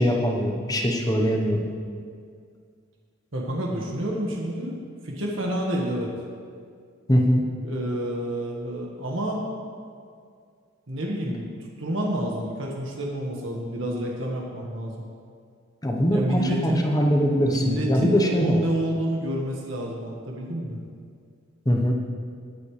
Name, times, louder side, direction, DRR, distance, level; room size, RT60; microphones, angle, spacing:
voice 1, 0.0-1.6 7.1-7.4 15.8-18.6 21.6-21.9, equal, 20° left, 1 dB, 1.0 m, -22 dB
voice 2, 3.3-4.8 5.0-6.1 7.6-9.5 10.9-11.5 11.8-15.0 16.1-16.8 17.5-20.8, equal, 75° right, -2 dB, 1.6 m, -28 dB
19.0 x 8.2 x 3.3 m, 2.2 s
head